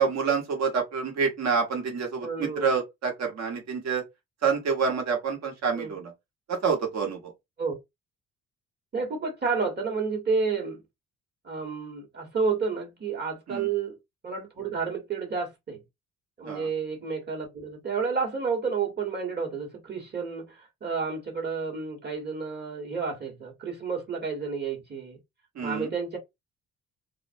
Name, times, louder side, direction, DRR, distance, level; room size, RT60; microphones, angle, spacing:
voice 1, 0.0-4.0 4.4-6.1 6.5-7.3 13.5-13.7 16.4-16.7 25.5-25.9, right 5 dB, 60° right, 1.2 m, -27 dB
voice 2, 2.2-2.7 5.7-6.0 7.6-7.7 8.9-10.8 11.4-14.0 14.2-15.8 16.4-25.2 25.6-26.2, right 5 dB, 35° right, 1.2 m, -30 dB
2.4 x 2.1 x 2.5 m
cardioid pair, 90°, 30 cm